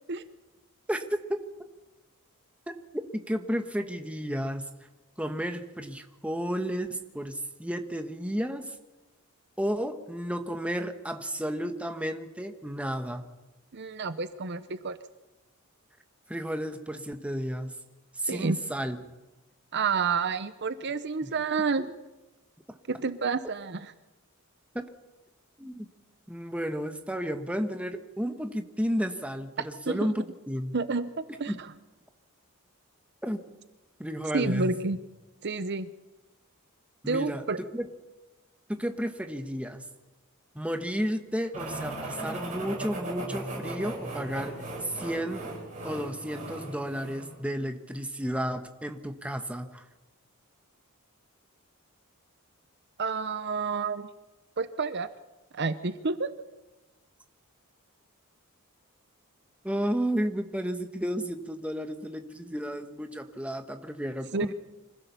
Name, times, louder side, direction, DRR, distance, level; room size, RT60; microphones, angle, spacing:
voice 1, 3.3-4.6 5.2-8.8 9.6-13.3 16.3-17.7 18.1-19.0 21.2-21.3 25.6-25.9 26.3-30.7 31.5-31.6 33.2-33.4 34.0-34.7 37.0-37.4 37.7-37.9 38.7-39.8 40.5-44.5 44.8-45.5 45.8-49.8 59.6-64.5, equal, 5° right, 6 dB, 1.2 m, -32 dB
voice 2, 13.7-15.0 18.3-18.6 19.7-21.9 22.9-23.9 29.9-30.2 30.7-31.5 34.3-35.0 35.4-35.9 37.1-37.6 53.0-54.1 54.6-55.1 55.5-56.4 64.3-64.5, right 4 dB, 50° right, 12 dB, 0.8 m, -29 dB
sound 1, 41.5-47.3, right 2 dB, 35° right, 7.9 m, -37 dB
25.5 x 15.5 x 6.9 m, 1.1 s
head